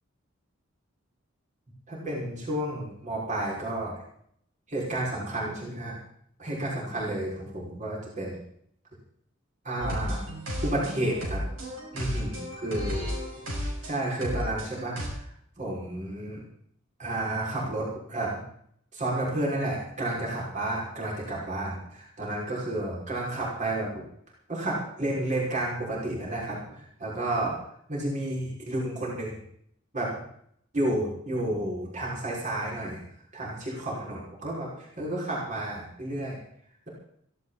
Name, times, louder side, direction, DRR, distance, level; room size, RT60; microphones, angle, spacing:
voice 1, 1.9-3.9 4.7-5.9 6.4-8.4 9.6-10.2 10.6-11.4 11.9-13.1 13.8-15.3 15.6-16.4 17.0-18.4 18.9-24.0 24.5-27.5 27.9-29.4 29.9-30.1 30.7-33.0 33.3-36.4, right 1 dB, 40° right, -4 dB, 5.8 m, -31 dB
sound 1, 9.8-15.1, equal, 80° right, 5.8 m, -33 dB
17.0 x 16.0 x 4.2 m, 0.67 s
head